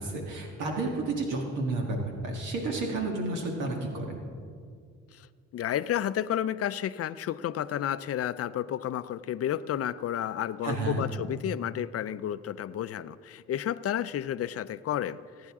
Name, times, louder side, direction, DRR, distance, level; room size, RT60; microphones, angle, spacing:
voice 1, 0.0-2.0 2.2-4.1 10.6-11.0, right 2 dB, 85° right, 0 dB, 1.8 m, -31 dB
voice 2, 5.5-15.5, left 11 dB, 50° left, 15 dB, 0.5 m, -31 dB
19.5 x 9.5 x 3.6 m, 2.2 s
cardioid pair, 90°, 30 cm